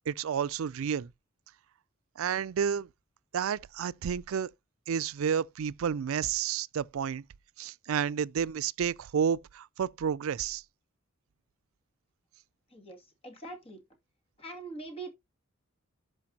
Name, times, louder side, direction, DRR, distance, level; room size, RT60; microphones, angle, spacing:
voice 1, 0.1-1.1 2.2-2.9 3.3-4.5 4.9-7.2 7.6-10.6, right 7 dB, 70° right, 0.4 m, -30 dB
voice 2, 12.7-13.8 14.4-15.1, right 2 dB, 30° left, 2.4 m, -43 dB
12.0 x 5.1 x 2.8 m
head